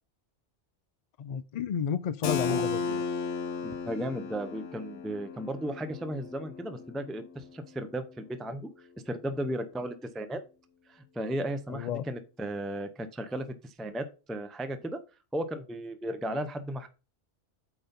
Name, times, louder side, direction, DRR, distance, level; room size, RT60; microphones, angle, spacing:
voice 1, 1.2-3.0 11.7-12.0, left 8 dB, 65° left, 0.4 m, -32 dB
Keyboard (musical), 2.2-7.8, left 4 dB, 85° left, 1.2 m, -35 dB
voice 2, 3.6-8.6 9.0-10.4 10.9-15.0 15.3-16.9, right 1 dB, ahead, 0.5 m, -35 dB
8.5 x 4.0 x 5.2 m
omnidirectional pair, 1.2 m